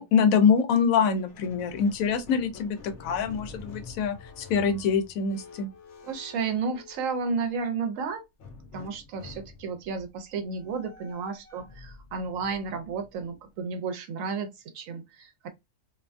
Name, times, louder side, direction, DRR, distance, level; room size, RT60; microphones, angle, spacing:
voice 1, 0.0-5.7, left 6 dB, 90° left, 1.0 m, -24 dB
Squeak, 1.1-7.5 8.4-13.6, left 4 dB, 65° left, 0.9 m, -48 dB
voice 2, 6.0-8.2 8.7-15.5, right 5 dB, 80° right, 1.0 m, -32 dB
2.6 x 2.2 x 2.4 m
omnidirectional pair, 1.4 m